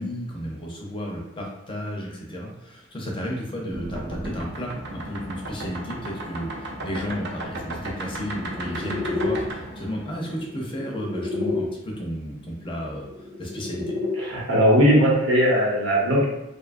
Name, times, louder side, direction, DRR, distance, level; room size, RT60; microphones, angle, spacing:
voice 1, 0.0-13.0 13.4-13.9, equal, 25° left, -1 dB, 0.5 m, -33 dB
sound 1, 3.7-11.6 12.9-14.1, left 1 dB, 60° right, 0.5 m, -32 dB
voice 2, 14.2-16.3, equal, 85° right, -5 dB, 0.9 m, -19 dB
2.6 x 2.3 x 2.5 m, 0.91 s
head